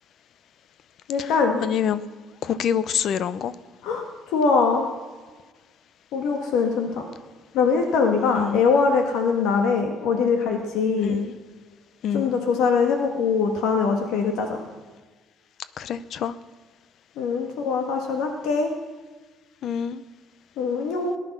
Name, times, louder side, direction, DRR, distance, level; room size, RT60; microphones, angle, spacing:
voice 1, 1.1-1.6 3.8-4.9 6.1-7.0 7.5-11.2 12.1-14.6 17.2-18.7 20.6-21.1, left 5 dB, 70° left, 4 dB, 1.6 m, -22 dB
voice 2, 1.6-2.0 2.4-3.5 8.3-8.6 11.0-11.4 12.0-12.4 15.8-16.3 19.6-20.0, left 8 dB, 45° left, 17 dB, 0.6 m, -26 dB
18.5 x 11.0 x 6.0 m, 1.4 s
cardioid pair, 175°, 0 cm